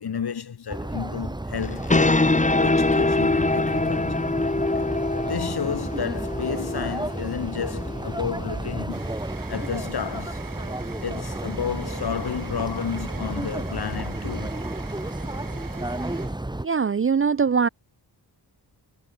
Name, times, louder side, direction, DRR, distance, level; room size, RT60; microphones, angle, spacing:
voice 1, 0.0-2.3 2.6-4.3 4.7-4.9 5.3-9.0 9.5-10.4 11.0-14.6, left 7 dB, 65° left, 3.0 m, -31 dB
sound 1, 0.7-16.7, right 1 dB, 10° right, 3.6 m, -32 dB
sound 2, 1.6-8.8, left 2 dB, 15° left, 3.9 m, -24 dB
sound 3, 8.4-16.8, right 6 dB, 50° right, 5.3 m, -44 dB
voice 2, 16.6-17.7, right 6 dB, 30° right, 0.5 m, -21 dB
wide cardioid pair, 175°, 41 cm